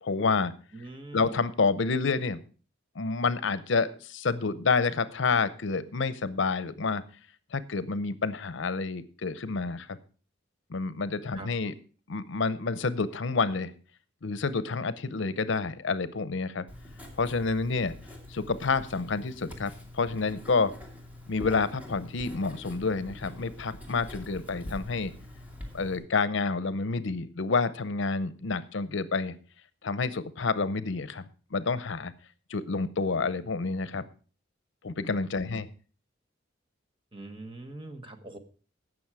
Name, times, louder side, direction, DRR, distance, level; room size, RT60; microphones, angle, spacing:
voice 1, 0.0-0.5 1.1-2.4 3.0-7.0 7.5-10.0 10.7-11.7 12.1-13.7 14.2-16.6 17.2-17.9 18.3-20.7 21.3-25.1 25.7-29.3 29.8-32.1 32.5-34.0 34.8-35.7, left 4 dB, 70° left, 15 dB, 0.7 m, -29 dB
voice 2, 0.7-1.4 11.3-11.5 35.5-35.6 37.1-38.4, right 2 dB, 25° right, 5 dB, 1.3 m, -43 dB
Writing, 16.7-26.0, left 1 dB, 10° right, 2.4 m, -45 dB
16.0 x 6.3 x 4.8 m, 0.39 s
head